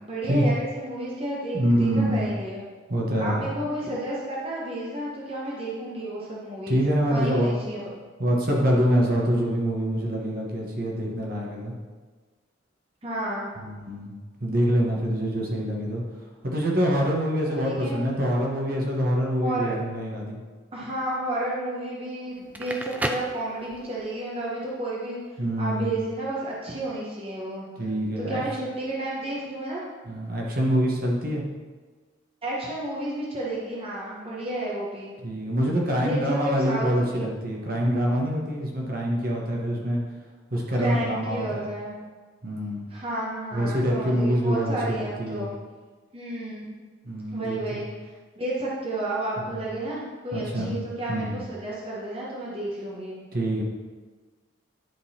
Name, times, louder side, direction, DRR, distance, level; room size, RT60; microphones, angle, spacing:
voice 1, 0.0-2.6 3.2-6.8 7.1-7.8 13.0-13.5 17.6-18.0 19.4-19.8 20.7-25.2 25.6-27.6 28.2-29.9 32.4-35.1 36.0-37.2 40.7-42.0 42.9-45.5 46.1-46.7 47.3-53.2, right 1 dB, 30° right, -6 dB, 1.1 m, -31 dB
voice 2, 1.5-2.3 2.9-3.5 6.7-7.6 8.2-11.7 13.6-16.0 16.4-20.4 25.4-26.0 27.8-28.4 30.1-31.4 35.2-40.0 40.5-41.7 42.4-42.8 43.5-45.5 47.0-47.8 49.5-49.6 50.3-50.7 51.1-51.4 53.3-53.6, equal, 45° right, -2 dB, 1.3 m, -25 dB
Crackle, 22.4-24.1, right 1 dB, 10° right, 0.3 m, -32 dB
10.5 x 3.9 x 4.3 m, 1.4 s
head